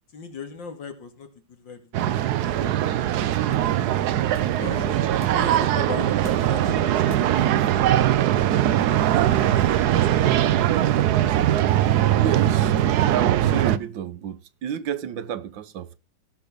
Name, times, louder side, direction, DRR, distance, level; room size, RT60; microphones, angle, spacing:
voice 1, 0.1-2.9 3.5-4.1 4.6-7.0 7.2-8.3 8.9-9.8 10.2-11.1, left 4 dB, 85° left, 2.9 m, -40 dB
sound 1, 1.8-8.0, left 1 dB, 5° left, 2.0 m, -48 dB
sound 2, 1.9-13.8, right 12 dB, 65° right, 1.2 m, -21 dB
voice 2, 12.2-12.7 13.1-16.0, right 9 dB, 85° right, 1.6 m, -30 dB
16.5 x 6.8 x 3.9 m
omnidirectional pair, 2.0 m